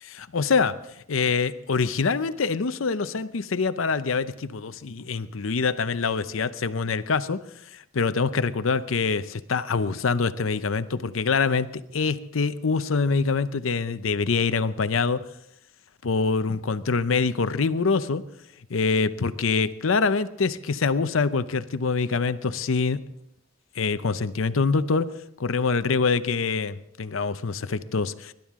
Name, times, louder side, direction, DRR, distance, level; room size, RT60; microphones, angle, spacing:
voice 1, 0.0-0.8 1.1-15.2 16.0-18.2 18.7-23.0 23.7-25.1 25.4-28.3, left 4 dB, 75° left, 12 dB, 0.7 m, -25 dB
24.5 x 12.0 x 3.7 m, 0.80 s
head